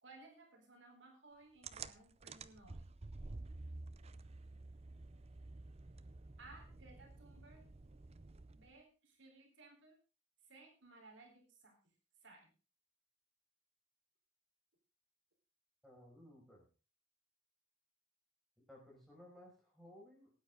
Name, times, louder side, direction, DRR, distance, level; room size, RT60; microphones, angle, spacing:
voice 1, 0.0-2.9 6.4-7.6 8.5-10.0 10.4-11.8 12.2-12.5, right 3 dB, 60° right, 2 dB, 3.9 m, -60 dB
sound 1, 1.6-8.8, right 3 dB, 30° right, 0.6 m, -51 dB
voice 2, 15.8-16.7 18.7-20.3, left 1 dB, ahead, -2 dB, 5.9 m, -58 dB
18.0 x 9.4 x 3.7 m, 0.33 s
head